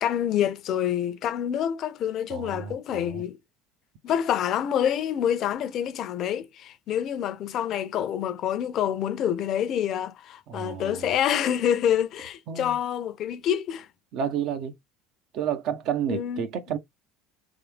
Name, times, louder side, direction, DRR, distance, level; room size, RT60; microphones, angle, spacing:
voice 1, 0.0-3.4 4.0-13.9 16.1-16.5, left 10 dB, 50° left, 0.7 m, -27 dB
voice 2, 2.3-3.2 10.5-11.1 12.5-12.8 14.1-14.7 15.3-16.8, right 8 dB, 60° right, 1.1 m, -31 dB
4.1 x 3.4 x 3.4 m
supercardioid pair, 90°, 0 cm